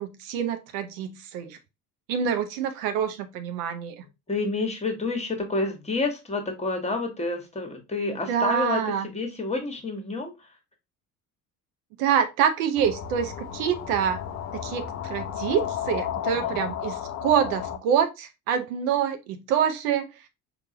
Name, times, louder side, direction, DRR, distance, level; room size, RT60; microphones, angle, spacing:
voice 1, 0.0-1.6 2.1-4.0 8.3-9.1 12.0-14.2 14.5-20.1, right 8 dB, 65° right, 0.6 m, -26 dB
voice 2, 4.3-10.3 16.4-16.6, left 3 dB, 15° left, 1.2 m, -29 dB
sound 1, 12.8-17.8, left 10 dB, 35° left, 0.6 m, -33 dB
4.5 x 2.5 x 2.8 m
figure-of-eight pair, 60°, 45 cm